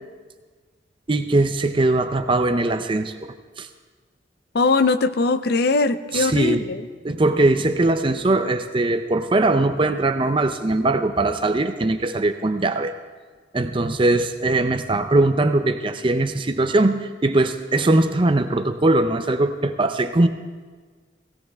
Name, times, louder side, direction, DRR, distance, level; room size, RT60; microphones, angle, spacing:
voice 1, 1.1-3.7 6.1-6.6 7.0-12.9 13.5-20.3, right 2 dB, 25° right, 8 dB, 0.5 m, -20 dB
voice 2, 4.5-6.8, left 3 dB, 55° left, 13 dB, 0.6 m, -20 dB
17.0 x 17.0 x 3.5 m, 1.5 s
head